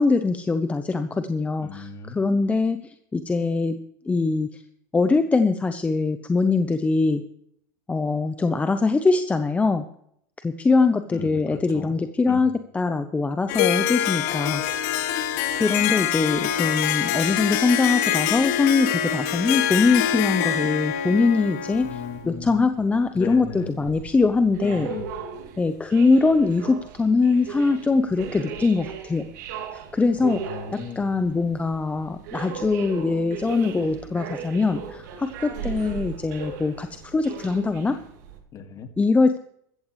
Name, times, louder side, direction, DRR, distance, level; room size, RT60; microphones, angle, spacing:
voice 1, 0.0-3.7 4.1-4.6 4.9-7.2 7.9-9.8 10.4-14.6 15.5-21.9 22.3-24.9 25.6-29.3 29.7-30.4 31.0-36.9 37.1-38.0 39.0-39.4, left 4 dB, 15° left, 9 dB, 0.8 m, -22 dB
voice 2, 1.6-2.2 11.1-11.9 12.2-12.4 21.8-22.6 23.1-23.9 24.6-25.1 30.2-31.1 38.5-38.9, left 6 dB, 35° left, 7 dB, 2.3 m, -37 dB
Harp, 13.5-22.2, left 10 dB, 65° left, 1.5 m, -25 dB
sound 1, 21.7-38.4, right 6 dB, 70° right, 3.1 m, -38 dB
14.5 x 14.5 x 3.3 m, 0.69 s
hypercardioid pair, 110°, 10 cm